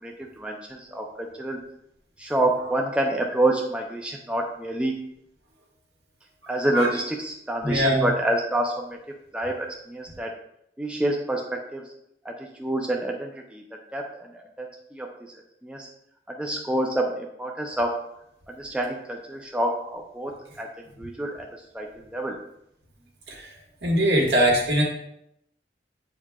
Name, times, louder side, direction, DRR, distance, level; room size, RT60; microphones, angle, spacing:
voice 1, 0.0-1.6 2.2-4.9 6.5-9.0 9.3-10.3 10.8-11.9 12.2-13.6 13.9-15.3 15.6-15.9 16.3-18.0 18.5-21.5 21.7-22.4, right 1 dB, 5° right, 0 dB, 0.5 m, -28 dB
voice 2, 7.6-8.0 23.4-23.5 23.8-24.8, equal, 80° right, -2 dB, 1.7 m, -21 dB
8.6 x 4.7 x 2.3 m, 0.77 s
head